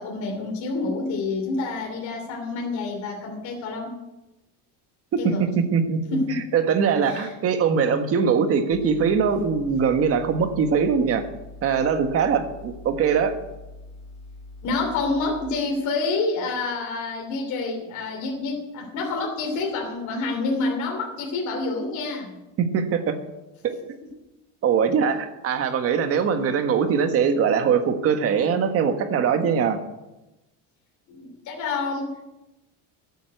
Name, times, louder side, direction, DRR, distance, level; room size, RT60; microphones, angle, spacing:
voice 1, 0.0-4.0 5.2-5.5 6.1-6.5 7.1-7.3 14.6-22.4 31.1-32.2, left 3 dB, 50° left, 0 dB, 3.1 m, -28 dB
voice 2, 5.1-11.3 11.6-13.4 22.6-23.2 23.6-23.8 24.6-29.8, right 6 dB, 35° right, 7 dB, 1.5 m, -22 dB
sound 1, 8.7-15.5, left 2 dB, 85° left, 2.2 m, -43 dB
13.0 x 8.4 x 7.9 m, 1.0 s
cardioid pair, 150°, 38 cm